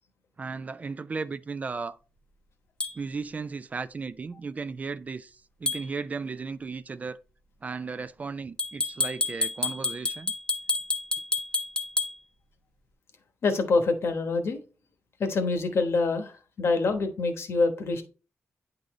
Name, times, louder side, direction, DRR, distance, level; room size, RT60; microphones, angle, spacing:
voice 1, 0.4-2.0 2.9-7.2 7.6-10.3, right 4 dB, 30° right, 0.3 m, -35 dB
sound 1, 2.8-2.9 5.7-5.9 8.6-12.1, left 3 dB, 20° left, 0.8 m, -29 dB
voice 2, 13.4-14.6 15.2-18.0, left 3 dB, 60° left, 1.1 m, -26 dB
9.5 x 3.9 x 3.1 m
wide cardioid pair, 145°, 5 cm